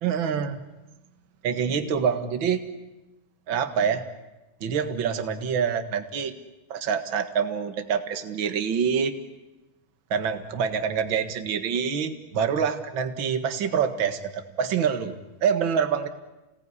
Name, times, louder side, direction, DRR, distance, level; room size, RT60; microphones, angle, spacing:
voice 1, 0.0-0.6 1.4-2.7 3.5-4.0 4.6-6.3 6.7-9.1 10.1-16.1, right 7 dB, 45° right, 8 dB, 1.8 m, -26 dB
28.0 x 18.5 x 9.8 m, 1.0 s
omnidirectional pair, 3.9 m